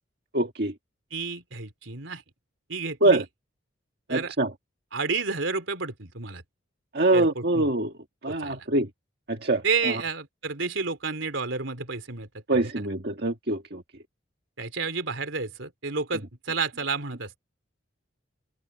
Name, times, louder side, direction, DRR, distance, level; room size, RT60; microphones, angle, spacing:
voice 1, 0.3-0.7 3.0-3.2 4.1-4.5 6.9-7.9 8.2-8.9 9.3-10.0 12.5-13.8, right 2 dB, 55° right, 1.7 m, -24 dB
voice 2, 1.1-2.2 2.7-3.3 4.1-4.3 4.9-6.4 7.1-7.7 8.3-8.6 9.6-12.7 14.6-17.4, right 4 dB, 80° right, 3.3 m, -31 dB
open air
head